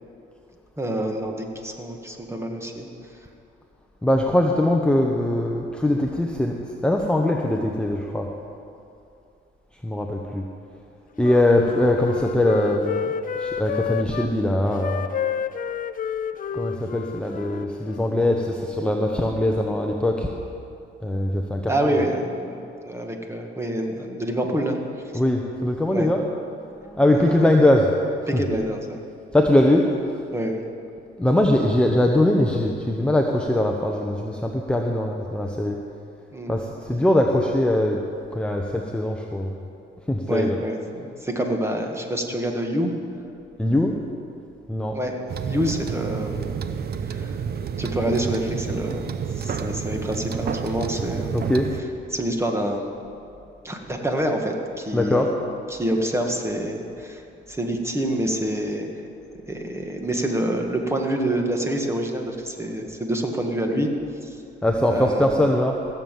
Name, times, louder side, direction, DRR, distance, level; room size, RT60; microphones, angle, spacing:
voice 1, 0.8-2.9 21.7-22.6 22.8-24.8 25.9-26.1 27.1-27.6 28.3-29.0 30.3-30.6 36.3-36.6 40.3-42.9 44.9-46.5 47.1-47.4 47.8-51.5 52.1-52.9 53.6-55.3 55.7-57.2 57.5-58.9 59.5-63.9 64.2-64.4 64.9-65.5, right 1 dB, 15° right, 2 dB, 1.8 m, -27 dB
voice 2, 4.0-6.6 6.8-8.3 9.8-10.4 11.2-13.0 13.4-15.1 16.5-20.3 21.0-21.8 22.5-22.6 25.1-26.3 26.7-27.9 28.2-28.4 29.3-29.9 31.2-35.8 36.5-38.0 38.3-39.6 40.1-40.6 43.6-44.0 44.7-45.0 51.3-51.7 54.9-55.3 64.6-65.8, left 1 dB, 5° left, 1 dB, 1.0 m, -21 dB
Wind instrument woodwind instrument, 11.2-14.3 14.7-18.2, left 8 dB, 45° left, 0.5 m, -30 dB
sound 1, 45.3-51.8, right 7 dB, 55° right, 0.7 m, -29 dB
16.0 x 7.2 x 7.6 m, 2.6 s
cardioid pair, 90°, 20 cm